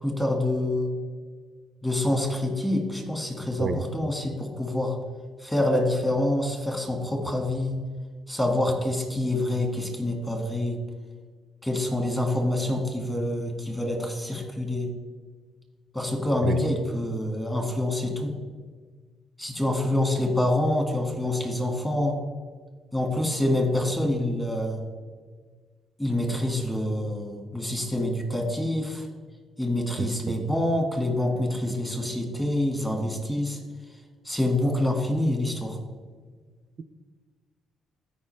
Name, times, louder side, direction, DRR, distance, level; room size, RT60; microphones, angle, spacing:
voice 1, 0.0-0.9 1.8-4.9 5.4-7.8 8.3-10.8 11.6-14.9 15.9-18.3 19.4-22.2 22.9-24.8 26.0-29.0 29.6-33.6 34.3-35.8, left 1 dB, 15° left, 2 dB, 1.9 m, -26 dB
voice 2, 30.0-30.3, right 7 dB, 60° right, 10 dB, 0.4 m, -29 dB
13.5 x 5.0 x 3.3 m, 1.5 s
cardioid pair, 90°, 0 cm